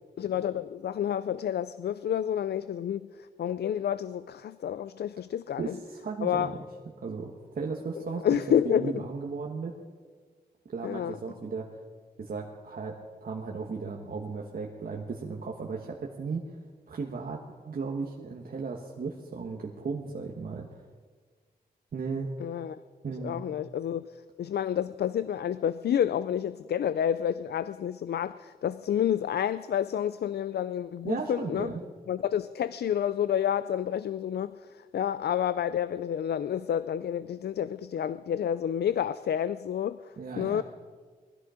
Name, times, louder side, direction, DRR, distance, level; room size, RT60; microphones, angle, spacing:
voice 1, 0.2-5.7 6.2-6.5 8.2-9.0 10.8-11.2 22.4-22.8 23.2-31.7 32.1-40.6, left 9 dB, 80° left, 0.4 m, -29 dB
voice 2, 5.6-6.6 7.0-8.4 8.6-9.7 10.7-11.7 12.2-12.9 13.2-16.4 16.9-20.7 21.9-22.3 23.0-23.4 31.0-31.8 40.2-40.6, right 4 dB, 60° right, 1.5 m, -35 dB
20.0 x 13.5 x 5.1 m
wide cardioid pair, 135°, 17 cm